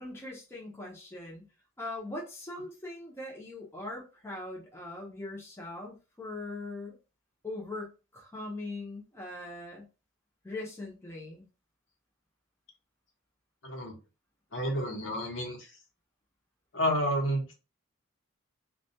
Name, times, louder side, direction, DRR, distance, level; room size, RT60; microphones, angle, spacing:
voice 1, 0.0-1.5 1.8-7.0 7.4-9.9 10.4-11.4, left 2 dB, 10° left, -3 dB, 0.6 m, -41 dB
voice 2, 13.6-13.9 14.5-15.7 16.7-17.5, equal, 65° left, 2 dB, 0.9 m, -30 dB
2.3 x 2.2 x 2.7 m, 0.31 s
head